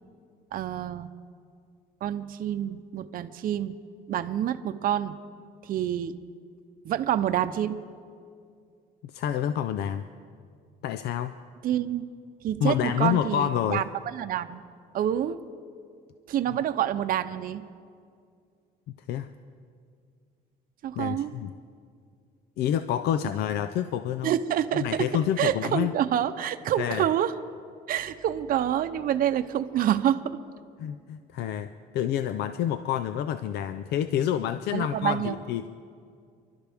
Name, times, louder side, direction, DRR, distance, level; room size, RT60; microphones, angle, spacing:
voice 1, 0.5-1.1 2.0-3.8 4.1-5.2 5.6-6.1 6.8-7.8 11.6-12.0 12.4-13.8 14.1-14.6 14.9-15.4 16.3-17.6 20.8-21.3 24.2-25.1 25.4-27.3 27.9-30.4 34.7-35.4, right 10 dB, 55° right, 9 dB, 0.7 m, -27 dB
voice 2, 9.0-10.0 10.8-11.3 12.6-13.8 19.1-19.3 21.0-21.5 22.6-24.3 24.7-25.9 26.8-27.1 30.8-35.7, left 10 dB, 75° left, 11 dB, 0.5 m, -28 dB
29.0 x 12.0 x 3.5 m, 2.3 s
cardioid pair, 110°, 17 cm